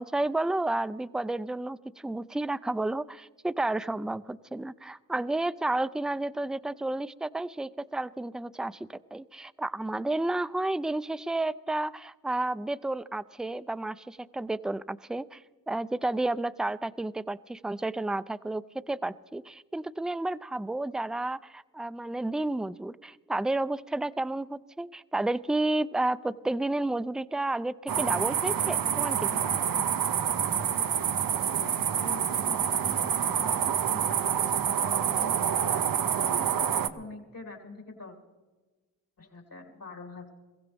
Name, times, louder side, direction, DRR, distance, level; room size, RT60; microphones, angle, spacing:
voice 1, 0.0-29.6, right 2 dB, ahead, 15 dB, 0.4 m, -31 dB
sound 1, 27.9-36.9, right 8 dB, 75° right, 0.7 m, -27 dB
voice 2, 30.9-34.5 34.8-35.3 35.7-38.2 39.2-40.3, left 2 dB, 70° left, 3 dB, 3.2 m, -45 dB
22.0 x 15.5 x 3.5 m, 1.2 s
cardioid pair, 45°, 35 cm